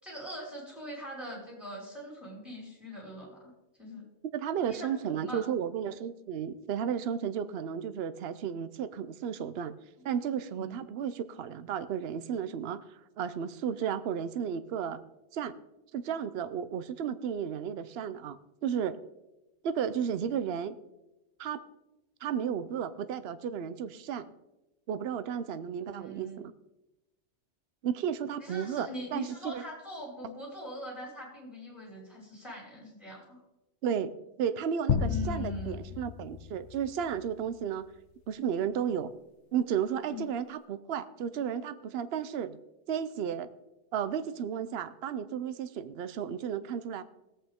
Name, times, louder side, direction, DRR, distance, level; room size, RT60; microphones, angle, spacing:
voice 1, 0.0-3.5 3.8-4.1 4.7-5.5 10.5-10.7 25.8-26.4 28.4-33.4 35.0-35.8 40.1-40.2, equal, ahead, -4 dB, 4.6 m, -42 dB
voice 2, 4.3-9.8 10.0-12.8 13.2-15.0 15.3-15.6 15.9-18.4 18.6-19.0 19.6-20.7 21.4-21.6 22.2-24.3 24.9-26.5 27.8-29.6 33.8-37.9 38.3-39.1 39.5-42.6 42.9-43.5 43.9-47.0, right 8 dB, 60° right, 13 dB, 0.8 m, -33 dB
sound 1, 34.9-37.4, left 8 dB, 70° left, 1.0 m, -32 dB
18.0 x 8.4 x 3.6 m, 0.98 s
omnidirectional pair, 1.3 m